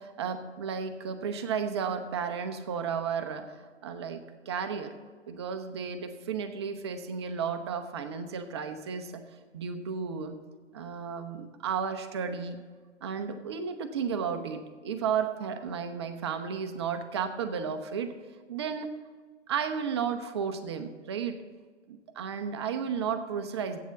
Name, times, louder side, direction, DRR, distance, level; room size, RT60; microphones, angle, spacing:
voice 1, 0.0-4.9 5.3-9.2 9.5-10.4 10.7-12.6 13.0-18.1 18.5-18.9 19.5-21.4 21.9-23.8, right 6 dB, 25° right, 8 dB, 0.5 m, -33 dB
8.1 x 7.1 x 7.1 m, 1.5 s
figure-of-eight pair, 125°, 36 cm